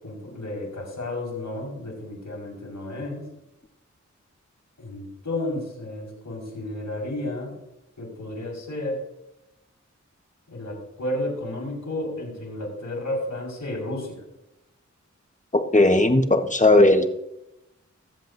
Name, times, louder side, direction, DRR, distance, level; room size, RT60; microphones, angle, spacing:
voice 1, 0.0-3.2 4.8-7.5 8.0-9.0 10.5-14.2, left 1 dB, 90° left, -6 dB, 4.6 m, -32 dB
voice 2, 15.5-17.1, left 2 dB, 25° left, 6 dB, 1.3 m, -17 dB
21.0 x 7.8 x 2.7 m, 0.88 s
cardioid pair, 40°, 30 cm